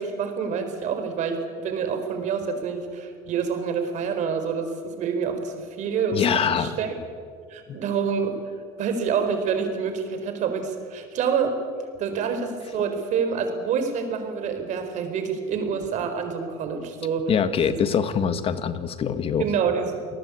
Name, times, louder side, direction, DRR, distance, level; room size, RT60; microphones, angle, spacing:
voice 1, 0.0-6.9 7.5-8.4 8.8-11.6 12.0-17.3 17.6-17.9 19.4-20.0, right 6 dB, 50° right, 7 dB, 4.6 m, -27 dB
voice 2, 6.1-6.7 17.3-19.5, left 7 dB, 40° left, 11 dB, 1.9 m, -24 dB
28.0 x 19.0 x 8.6 m, 2.1 s
cardioid pair, 125°, 15 cm